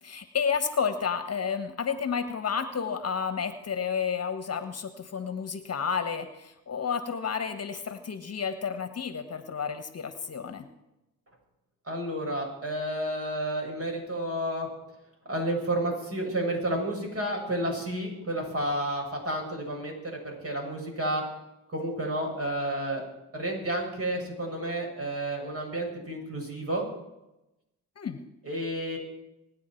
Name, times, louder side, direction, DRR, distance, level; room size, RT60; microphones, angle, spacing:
voice 1, 0.0-10.7 28.0-28.2, left 6 dB, 40° left, 10 dB, 1.4 m, -31 dB
voice 2, 11.9-14.7 15.3-21.2 21.7-23.1 23.3-26.9 28.4-29.0, right 1 dB, 40° right, 0 dB, 7.1 m, -31 dB
24.5 x 9.6 x 4.6 m, 0.94 s
supercardioid pair, 60°, 38 cm